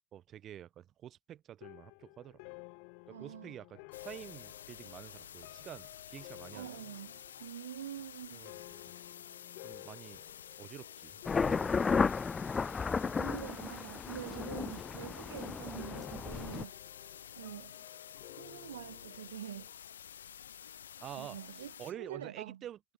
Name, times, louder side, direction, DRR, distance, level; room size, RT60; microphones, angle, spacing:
voice 1, 0.1-2.4 3.1-6.7 8.3-8.8 9.6-10.2 10.6-11.2 11.4-11.8 21.0-22.9, right 11 dB, 50° right, 3.6 m, -48 dB
sound 1, 1.6-13.1 13.4-13.9 14.4-19.7, left 40 dB or more, 65° left, 2.4 m, -54 dB
voice 2, 3.1-3.5 6.5-8.5 12.6-16.8 17.4-17.8 18.3-19.7 21.2-22.6, right 11 dB, 80° right, 1.4 m, -46 dB
sound 2, 3.9-21.9, left 9 dB, 80° left, 0.6 m, -51 dB
sound 3, 11.3-16.6, left 5 dB, 30° left, 0.5 m, -33 dB
figure-of-eight pair, 60°, 0 cm